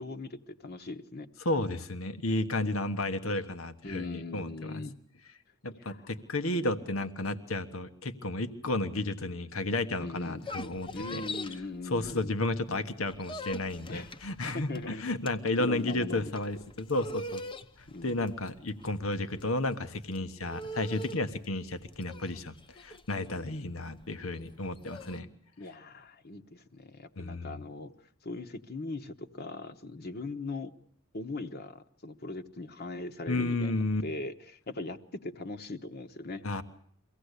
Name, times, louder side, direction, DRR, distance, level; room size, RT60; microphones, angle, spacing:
voice 1, 0.0-1.3 3.8-5.0 5.8-6.0 10.0-10.4 10.9-12.3 13.9-14.1 14.5-15.0 15.6-16.3 17.9-18.2 23.3-23.4 25.6-27.9 28.2-30.7 31.1-33.7 34.0-36.4, left 2 dB, 50° left, 7 dB, 1.1 m, -40 dB
voice 2, 1.4-4.8 5.6-11.2 11.9-17.4 17.8-25.3 27.2-27.6 33.3-34.0 36.4-36.6, left 2 dB, 85° left, 11 dB, 1.3 m, -32 dB
sound 1, 10.2-12.6 12.9-25.2, left 1 dB, 25° left, 0.9 m, -43 dB
23.5 x 17.0 x 8.2 m, 0.63 s
head